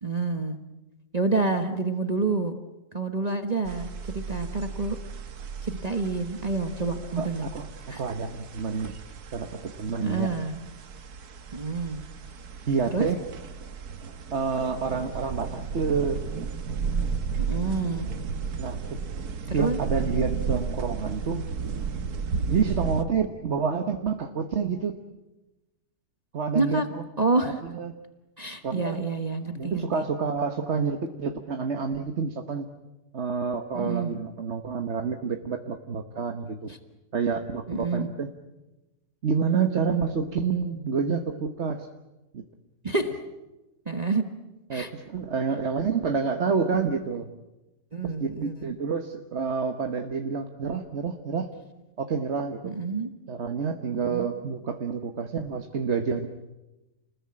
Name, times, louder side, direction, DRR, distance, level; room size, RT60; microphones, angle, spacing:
voice 1, 0.0-0.6 1.1-2.5 2.9-5.0 5.6-7.5 7.9-8.0 10.0-10.6 11.5-12.0 12.9-13.1 17.5-18.1 19.5-19.8 26.5-26.9 27.2-27.6 28.4-30.0 33.7-34.1 36.7-36.8 37.7-38.1 42.8-43.1 43.8-44.2 44.7-44.9 47.9-48.8 52.6-53.1 53.9-54.2, right 3 dB, 25° right, 6 dB, 1.4 m, -28 dB
sound 1, 3.7-23.0, right 5 dB, 75° right, 1.8 m, -34 dB
voice 2, 7.2-7.7 8.0-8.9 9.3-10.3 12.7-13.2 14.3-16.2 18.6-19.0 19.5-21.5 22.5-25.0 26.3-27.0 27.6-27.9 28.6-29.0 29.6-32.7 33.1-36.7 37.1-38.3 39.2-41.9 42.3-42.4 44.7-47.3 48.0-51.5 52.0-52.7 53.3-56.3, right 5 dB, 45° right, 5 dB, 1.5 m, -28 dB
29.5 x 20.5 x 8.7 m, 1.0 s
omnidirectional pair, 1.6 m